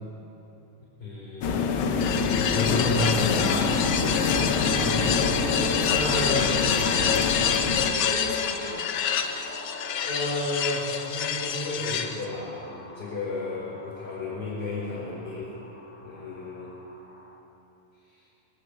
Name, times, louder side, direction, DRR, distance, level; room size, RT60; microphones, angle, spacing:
voice 1, 1.0-4.0 4.8-5.0 5.8-6.5 9.3-9.5 9.9-15.5 16.0-16.7 18.1-18.2, left 2 dB, 30° left, -8 dB, 5.8 m, -32 dB
sound 1, 1.4-7.9, left 5 dB, 65° left, 1.4 m, -26 dB
sound 2, 2.0-12.2, left 8 dB, 80° left, 1.1 m, -27 dB
sound 3, 3.5-17.4, left 1 dB, 5° left, 1.3 m, -39 dB
voice 2, 4.7-5.6 6.1-8.8, left 2 dB, 45° left, -1 dB, 3.4 m, -35 dB
22.5 x 13.5 x 8.5 m, 3.0 s
omnidirectional pair, 3.5 m